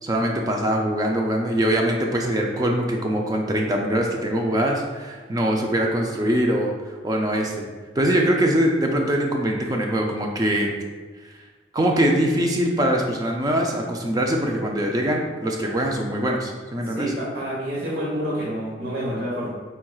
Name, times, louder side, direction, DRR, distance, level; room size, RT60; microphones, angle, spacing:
voice 1, 0.0-7.7 8.0-10.7 11.7-17.1, right 1 dB, 20° right, 1 dB, 0.4 m, -23 dB
voice 2, 17.0-19.5, right 1 dB, 70° right, -7 dB, 1.0 m, -28 dB
4.5 x 4.4 x 2.3 m, 1.4 s
head